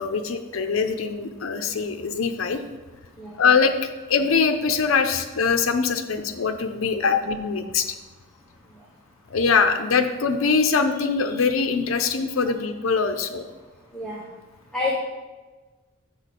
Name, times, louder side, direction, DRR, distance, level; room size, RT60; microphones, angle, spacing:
voice 1, 0.0-2.6 3.4-3.7 4.1-7.9 9.3-13.5, left 5 dB, 80° left, 7 dB, 0.6 m, -23 dB
voice 2, 13.9-14.2 14.7-15.0, left 4 dB, 5° left, -6 dB, 0.8 m, -27 dB
6.6 x 5.5 x 4.2 m, 1.2 s
head